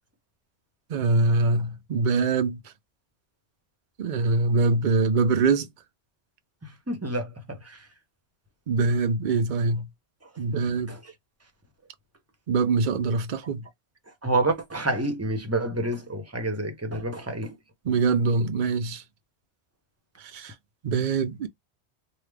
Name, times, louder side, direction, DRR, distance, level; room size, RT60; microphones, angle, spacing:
voice 1, 0.9-2.6 4.0-5.7 8.7-9.9 10.4-11.0 12.5-13.6 17.8-19.0 20.2-20.5 20.8-21.5, right 3 dB, 50° right, 0.7 m, -23 dB
voice 2, 6.6-7.9 10.7-11.1 14.2-17.6, right 2 dB, 15° right, 0.8 m, -29 dB
3.5 x 2.3 x 3.3 m
omnidirectional pair, 1.2 m